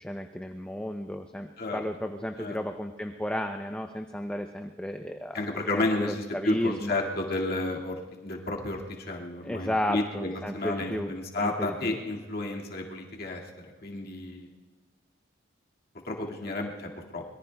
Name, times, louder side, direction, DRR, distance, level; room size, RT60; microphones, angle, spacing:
voice 1, 0.0-5.4 5.7-7.0 9.4-11.1 11.4-11.9, left 1 dB, 5° left, 4 dB, 0.5 m, -33 dB
voice 2, 5.3-14.5 16.1-17.2, left 2 dB, 50° left, -1 dB, 2.1 m, -32 dB
25.0 x 22.0 x 2.3 m, 1.3 s
head